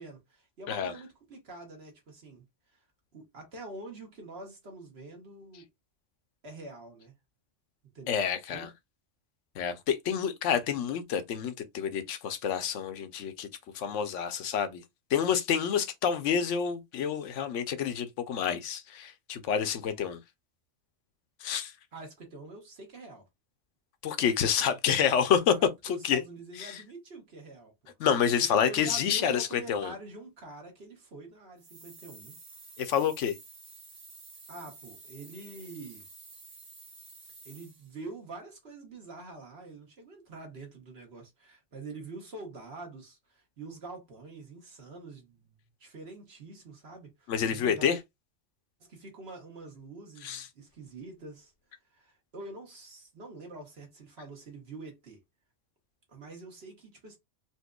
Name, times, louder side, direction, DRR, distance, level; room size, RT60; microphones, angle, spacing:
voice 1, 0.0-2.4 2.7-2.8 3.1-5.7 6.4-7.1 7.9-8.1 8.5-8.7 21.9-23.3 25.6-27.9 28.6-32.4 34.5-36.1 37.4-48.0 48.9-51.5 51.9-55.2 56.1-57.2, right 2 dB, 60° right, 1.5 m, -46 dB
voice 2, 8.1-8.7 9.6-13.5 13.7-14.8 15.1-20.2 21.4-21.7 24.0-25.5 25.8-26.2 26.6-26.8 28.0-29.9 32.8-33.3 47.3-48.0 50.2-50.5, left 8 dB, 80° left, 1.0 m, -28 dB
sound 1, 31.6-38.0, right 3 dB, 35° right, 0.9 m, -51 dB
4.3 x 2.5 x 2.2 m
omnidirectional pair, 1.2 m